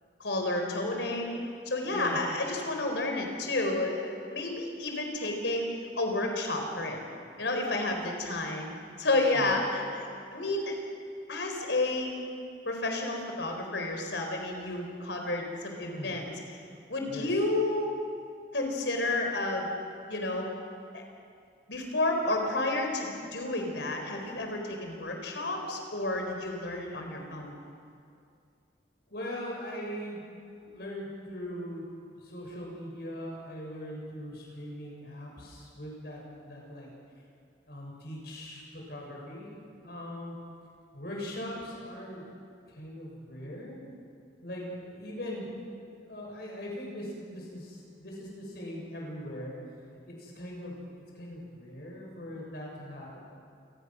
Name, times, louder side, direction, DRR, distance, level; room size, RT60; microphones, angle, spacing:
voice 1, 0.2-1.4 1.7-7.0 7.4-10.8 11.3-12.1 12.6-16.6 16.9-17.9 18.5-19.7 20.1-20.5 20.9-21.0 21.7-27.5, left 2 dB, 75° left, 3 dB, 4.3 m, -31 dB
voice 2, 29.1-30.2 30.6-31.9 32.2-36.9 37.7-39.5 39.8-40.4 40.9-42.3 42.8-43.8 44.4-45.5 46.1-49.5 50.2-53.2, equal, 55° left, -2 dB, 7.3 m, -40 dB
28.0 x 19.5 x 6.3 m, 2.3 s
head